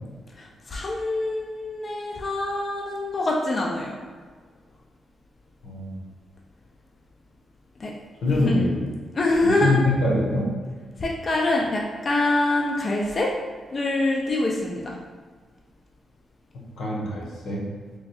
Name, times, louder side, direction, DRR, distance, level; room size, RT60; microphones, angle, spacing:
voice 1, 0.4-4.0 7.8-7.9 8.4-8.7 9.1-9.8 11.0-13.3 13.7-14.9, left 2 dB, 30° left, -2 dB, 0.4 m, -25 dB
voice 2, 5.6-6.0 8.2-8.9 9.4-10.5 16.8-17.6, left 2 dB, 90° left, -4 dB, 1.0 m, -24 dB
3.3 x 2.3 x 4.2 m, 1.5 s
wide cardioid pair, 170°, 0 cm